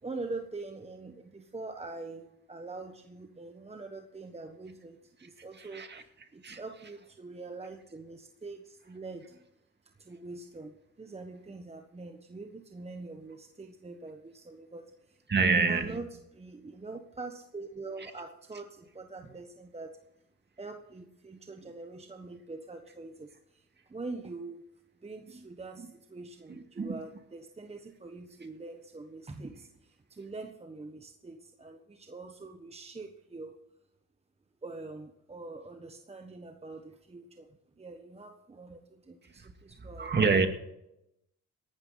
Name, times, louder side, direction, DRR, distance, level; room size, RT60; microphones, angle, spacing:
voice 1, 0.0-9.3 10.0-16.1 16.3-20.0 20.6-24.6 25.0-33.6 34.6-40.1, right 3 dB, 20° right, 5 dB, 1.3 m, -44 dB
voice 2, 5.6-6.0 6.4-6.6 15.3-16.0 26.5-27.0 39.4-39.5 39.8-40.5, right 4 dB, 35° right, 7 dB, 2.2 m, -27 dB
18.0 x 12.0 x 4.1 m, 0.84 s
cardioid pair, 90°, 30 cm